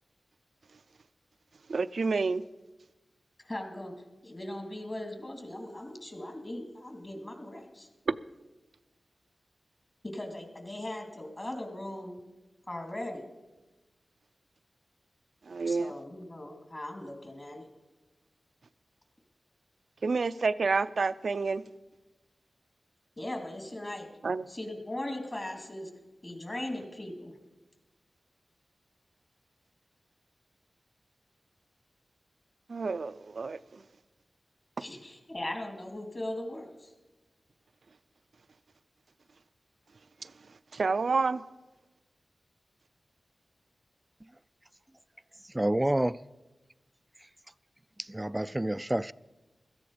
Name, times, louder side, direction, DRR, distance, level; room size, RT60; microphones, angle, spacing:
voice 1, 1.7-2.4 8.1-8.2 15.5-15.9 20.0-21.6 24.2-24.5 32.7-33.8 40.2-40.3 40.7-41.4, right 4 dB, 75° right, 0.5 m, -29 dB
voice 2, 3.4-3.9 4.2-7.9 10.0-12.1 12.7-13.3 15.6-17.7 23.2-24.1 24.5-25.9 26.2-27.3 34.8-36.9, left 1 dB, 35° left, 2.9 m, -39 dB
voice 3, 45.5-46.2 48.0-49.1, right 1 dB, 15° right, 0.4 m, -28 dB
16.5 x 13.5 x 5.0 m
cardioid pair, 55°, 0 cm